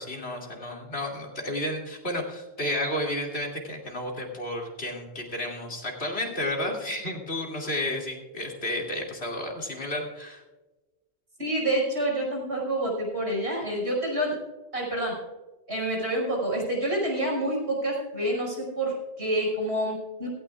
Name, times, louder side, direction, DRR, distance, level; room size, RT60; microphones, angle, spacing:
voice 1, 0.0-10.4, left 1 dB, 75° left, 0 dB, 2.9 m, -32 dB
voice 2, 11.4-14.4 14.7-15.1 15.7-20.3, right 1 dB, 90° right, -2 dB, 5.9 m, -28 dB
17.0 x 16.5 x 2.4 m, 1.1 s
omnidirectional pair, 1.1 m